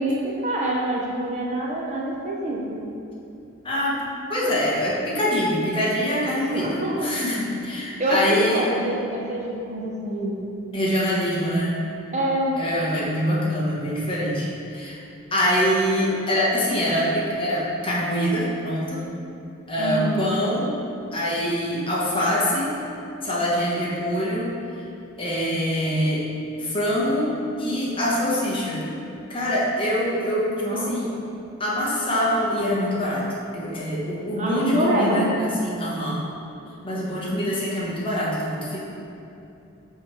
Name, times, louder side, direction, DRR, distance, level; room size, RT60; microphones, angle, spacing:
voice 1, 0.0-2.8 6.5-7.1 8.0-10.4 12.1-12.6 19.8-20.2 30.6-31.0 34.4-35.4, right 1 dB, 35° right, -3 dB, 0.6 m, -25 dB
voice 2, 3.6-4.0 4.3-8.7 10.7-11.8 12.6-15.0 15.3-19.1 19.7-20.7 21.1-22.7 23.2-24.5 25.2-26.3 26.6-27.3 27.6-28.8 29.3-31.1 31.6-33.3 33.5-36.2 36.8-38.8, equal, 25° left, -6 dB, 1.1 m, -24 dB
6.9 x 3.2 x 4.7 m, 2.7 s
head